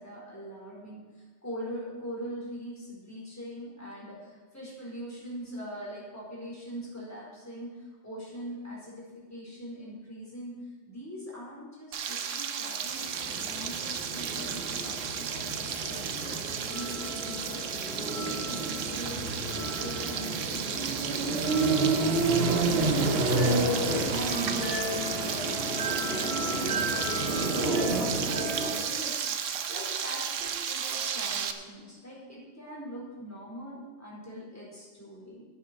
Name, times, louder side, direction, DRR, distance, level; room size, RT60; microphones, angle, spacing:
voice 1, 0.0-35.5, equal, 10° left, -6 dB, 4.4 m, -42 dB
Frying (food), 11.9-31.5, right 7 dB, 90° right, 1.2 m, -34 dB
sound 1, 13.0-28.7, right 2 dB, 55° right, 2.1 m, -30 dB
11.5 x 9.8 x 5.8 m, 1.4 s
omnidirectional pair, 1.3 m